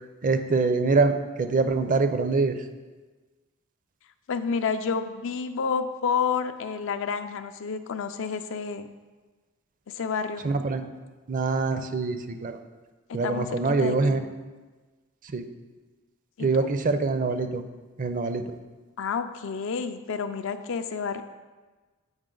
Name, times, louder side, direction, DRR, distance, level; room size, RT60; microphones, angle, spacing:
voice 1, 0.2-2.6 10.4-10.8 11.3-12.6 13.1-14.3 15.3-15.5 16.4-17.6 18.0-18.4, right 3 dB, 40° right, 9 dB, 0.5 m, -24 dB
voice 2, 4.3-8.9 9.9-10.5 13.2-14.2 16.4-16.7 19.0-21.2, left 6 dB, 65° left, 9 dB, 0.4 m, -30 dB
7.9 x 4.8 x 3.8 m, 1.3 s
head